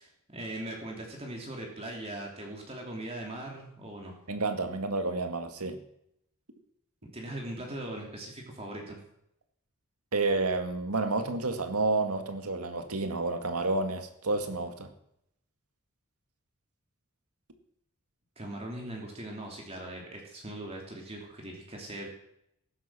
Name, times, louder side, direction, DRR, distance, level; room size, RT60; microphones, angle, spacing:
voice 1, 0.0-4.1 7.1-9.0 18.4-22.1, right 1 dB, 25° right, 0 dB, 2.9 m, -40 dB
voice 2, 4.3-5.8 10.1-14.9, right 3 dB, 85° right, 7 dB, 2.0 m, -30 dB
15.5 x 11.0 x 6.2 m, 0.76 s
head